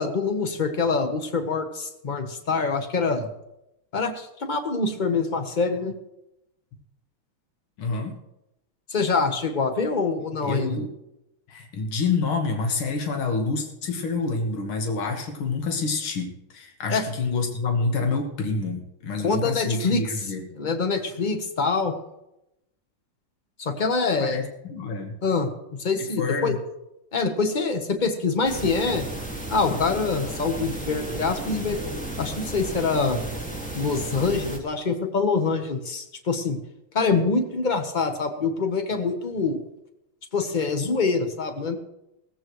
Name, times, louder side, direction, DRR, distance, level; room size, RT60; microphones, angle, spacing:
voice 1, 0.0-3.3 3.9-5.9 8.9-10.8 16.9-17.0 19.2-20.1 20.5-21.9 23.6-24.4 25.2-25.5 25.8-26.5 27.1-29.1 29.5-31.8 32.2-33.2 33.7-36.6 36.9-39.6 40.3-41.8, left 4 dB, 35° left, 6 dB, 0.8 m, -25 dB
voice 2, 7.8-8.2 10.4-10.9 11.5-20.5 24.2-25.1 26.2-26.6 29.7-29.8, left 4 dB, 75° left, 3 dB, 2.3 m, -27 dB
sound 1, 28.4-34.6, right 2 dB, 5° left, 1.6 m, -34 dB
17.0 x 14.5 x 3.1 m, 0.88 s
omnidirectional pair, 2.3 m